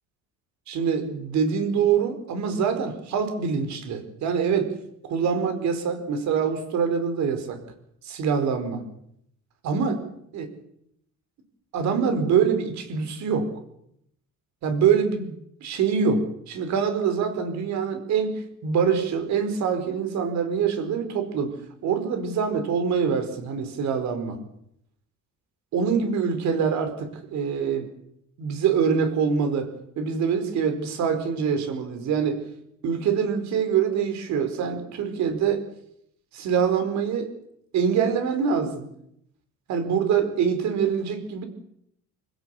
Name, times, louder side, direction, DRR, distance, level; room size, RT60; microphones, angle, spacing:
voice 1, 0.7-4.7 5.0-7.6 8.0-8.8 9.6-10.0 10.3-10.5 11.7-13.5 14.6-15.4 15.6-18.3 18.6-21.5 21.8-24.4 25.7-27.9 28.4-32.4 32.8-35.6 36.3-37.3 37.7-38.9 39.7-41.4, right 6 dB, 55° right, 8 dB, 4.7 m, -24 dB
26.5 x 16.5 x 8.5 m, 0.74 s
cardioid pair, 175°, 33 cm